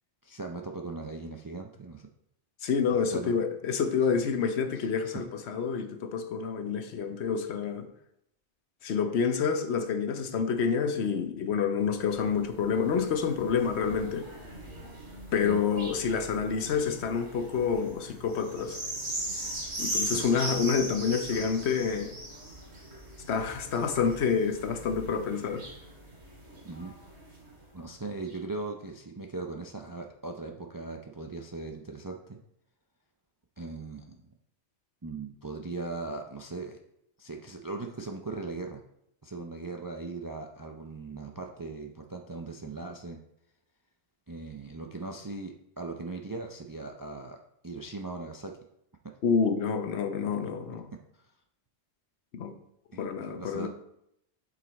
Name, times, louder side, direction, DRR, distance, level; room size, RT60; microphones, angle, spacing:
voice 1, 0.2-2.1 3.0-3.3 4.8-5.2 15.4-15.6 20.0-20.2 26.6-26.9 27.7-32.4 33.6-34.2 35.0-36.8 37.2-38.8 39.2-43.2 44.3-48.5 51.2-51.3 52.9-53.7, right 3 dB, 30° right, 3 dB, 0.3 m, -39 dB
voice 2, 2.6-7.9 8.8-14.3 15.3-18.8 19.8-22.1 23.3-25.7 49.2-50.9 52.3-52.6 53.0-53.7, left 6 dB, 75° left, 8 dB, 1.0 m, -28 dB
sound 1, 11.8-27.6 28.3-28.4, right 1 dB, 75° right, 2.3 m, -40 dB
7.5 x 5.4 x 4.1 m, 0.78 s
omnidirectional pair, 1.1 m